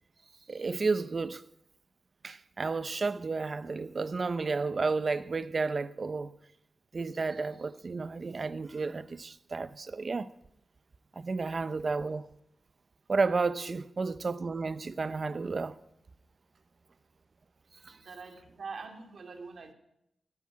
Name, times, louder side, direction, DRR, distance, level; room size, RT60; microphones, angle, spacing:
voice 1, 0.5-1.5 2.2-6.3 6.9-10.3 11.2-12.3 13.1-15.7 17.8-18.0, right 4 dB, 35° right, 0.6 m, -32 dB
voice 2, 17.9-19.7, right 4 dB, 55° right, 2.6 m, -44 dB
16.5 x 9.6 x 8.6 m
wide cardioid pair, 150°, 0 cm